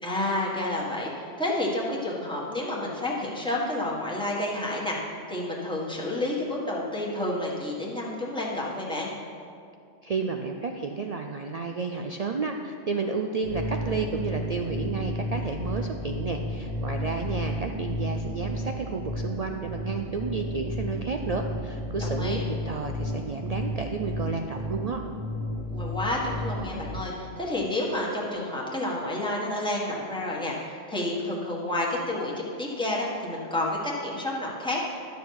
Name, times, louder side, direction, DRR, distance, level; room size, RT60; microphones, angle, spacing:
voice 1, 0.0-5.0 5.3-9.1 22.0-22.4 25.7-34.8, left 1 dB, 5° left, -5 dB, 1.5 m, -30 dB
voice 2, 10.0-25.0, right 4 dB, 75° right, 4 dB, 0.3 m, -31 dB
sound 1, 13.4-27.0, left 1 dB, 35° right, 1.4 m, -32 dB
12.0 x 6.9 x 4.7 m, 2.4 s
omnidirectional pair, 1.3 m